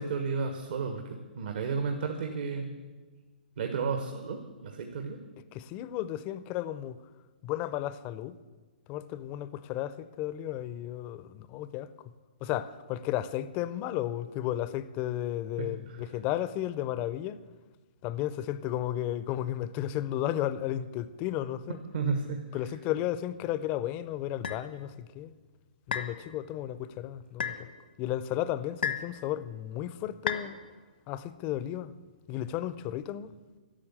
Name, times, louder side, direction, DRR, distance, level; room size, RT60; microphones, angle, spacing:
voice 1, 0.0-2.7 3.6-5.2 15.6-15.7 21.9-22.4, right 5 dB, 65° right, 1.4 m, -32 dB
voice 2, 5.5-7.0 7.4-8.4 8.9-11.9 12.4-17.4 18.0-21.8 22.5-25.3 25.9-27.7 28.0-30.6 31.1-31.9 32.3-33.3, left 12 dB, 30° left, 0.5 m, -33 dB
sound 1, 24.4-24.6 25.9-26.2 27.4-27.6 28.8-29.1 30.3-30.5, left 7 dB, 75° left, 1.2 m, -31 dB
11.5 x 7.1 x 9.8 m
hypercardioid pair, 135°, 5 cm